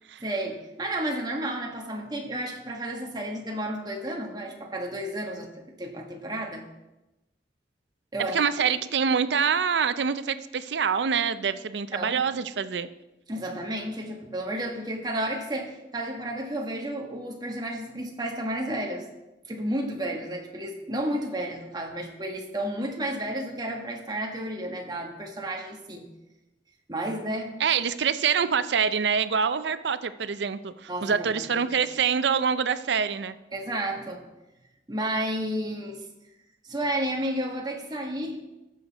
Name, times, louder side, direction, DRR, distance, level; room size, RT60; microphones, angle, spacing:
voice 1, 0.2-6.6 8.1-8.4 11.9-12.2 13.3-19.1 19.5-26.0 26.9-27.5 30.9-31.3 31.5-31.6 33.5-34.2 34.9-36.0 36.6-38.4, right 1 dB, 25° right, 1 dB, 1.4 m, -32 dB
voice 2, 8.3-12.9 27.6-33.4, right 6 dB, 80° right, 13 dB, 0.5 m, -25 dB
14.5 x 6.5 x 4.1 m, 0.99 s
head